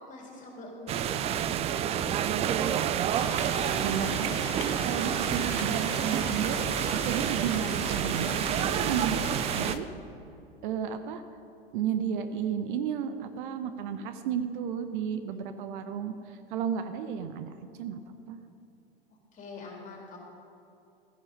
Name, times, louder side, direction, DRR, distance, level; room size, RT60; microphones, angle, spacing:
voice 1, 0.1-1.4 1.7-4.0 15.3-15.4 19.3-20.2, left 2 dB, 25° left, -1 dB, 3.5 m, -44 dB
sound 1, 0.9-9.8, right 10 dB, 20° right, 0.3 m, -29 dB
sound 2, 3.1-9.8, left 8 dB, 60° left, 1.0 m, -40 dB
voice 2, 3.8-6.6 6.9-9.2 9.6-9.9 10.6-11.2 11.7-17.5 17.8-18.0 18.3-18.4, right 8 dB, 55° right, 9 dB, 0.8 m, -33 dB
13.5 x 10.5 x 5.4 m, 2.7 s
figure-of-eight pair, 90°, 30 cm